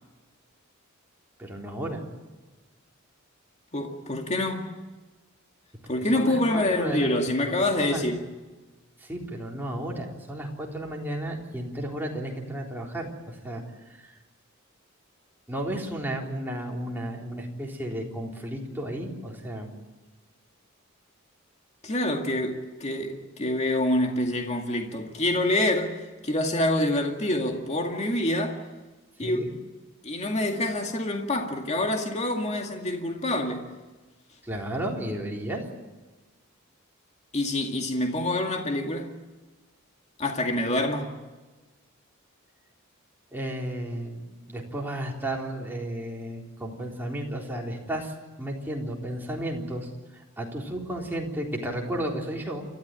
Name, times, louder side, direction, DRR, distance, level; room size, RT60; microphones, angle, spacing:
voice 1, 1.4-2.0 6.1-7.1 7.8-8.0 9.0-13.6 13.9-14.1 15.5-19.7 29.2-29.5 34.4-35.6 43.3-48.1 48.4-52.7, right 1 dB, 10° right, 3.9 m, -33 dB
voice 2, 3.7-4.7 5.9-8.2 21.8-26.0 26.2-28.6 29.2-29.4 30.0-33.6 37.3-39.1 40.2-41.2, left 1 dB, 35° left, 2.2 m, -26 dB
29.5 x 13.5 x 9.2 m
head